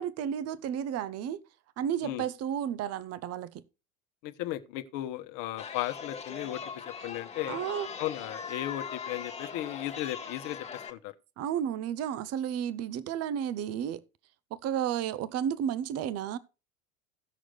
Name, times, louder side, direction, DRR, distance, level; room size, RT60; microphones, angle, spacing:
voice 1, 0.0-1.4 1.8-3.6 7.5-7.9 11.4-14.0 14.5-16.4, right 9 dB, 40° right, 0.8 m, -32 dB
voice 2, 4.2-7.6 8.0-11.1, left 14 dB, 55° left, 1.2 m, -36 dB
Chatter, 5.6-10.9, left 6 dB, 15° left, 1.7 m, -40 dB
16.5 x 6.2 x 3.3 m
hypercardioid pair, 80°, 40 cm